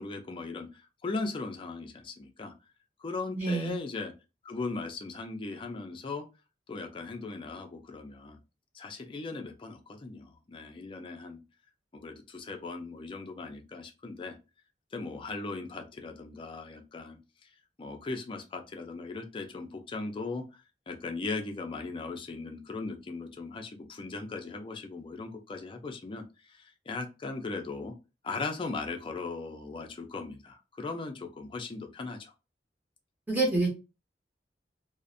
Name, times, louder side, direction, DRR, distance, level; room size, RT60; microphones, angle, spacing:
voice 1, 0.0-2.5 3.0-4.1 4.4-6.3 6.7-8.4 8.7-11.4 11.9-14.4 14.9-17.2 17.8-27.9 28.2-32.3, left 3 dB, 30° left, 5 dB, 0.4 m, -38 dB
voice 2, 3.4-3.8 33.3-33.7, right 3 dB, 10° right, -1 dB, 0.7 m, -27 dB
2.4 x 2.0 x 2.5 m, 0.29 s
head